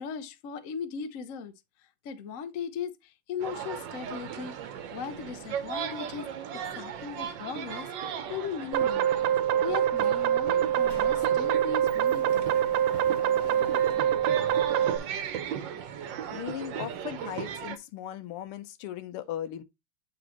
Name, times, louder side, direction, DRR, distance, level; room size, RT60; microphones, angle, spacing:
voice 1, 0.0-1.5 2.0-6.3 6.5-12.5 13.1-14.0, left 6 dB, 60° left, 0.8 m, -38 dB
sound 1, 3.4-17.8, right 8 dB, 65° right, 1.4 m, -37 dB
sound 2, 8.7-15.0, right 10 dB, 80° right, 1.6 m, -25 dB
Sliding door, 10.0-10.1 10.4-15.4, equal, 15° left, 0.8 m, -47 dB
voice 2, 16.3-19.6, left 11 dB, 85° left, 1.7 m, -37 dB
8.9 x 4.2 x 3.0 m
omnidirectional pair, 2.4 m